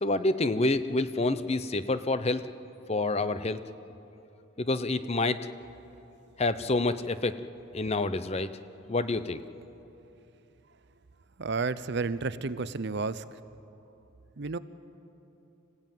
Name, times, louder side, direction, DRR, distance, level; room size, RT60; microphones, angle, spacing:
voice 1, 0.0-2.5 2.9-3.6 4.6-5.4 6.4-7.4 7.7-8.5 8.9-9.4, left 2 dB, 30° left, 12 dB, 0.7 m, -27 dB
voice 2, 11.4-13.2 14.4-14.6, right 4 dB, 55° right, 15 dB, 0.6 m, -31 dB
26.0 x 16.0 x 9.2 m, 2.9 s
head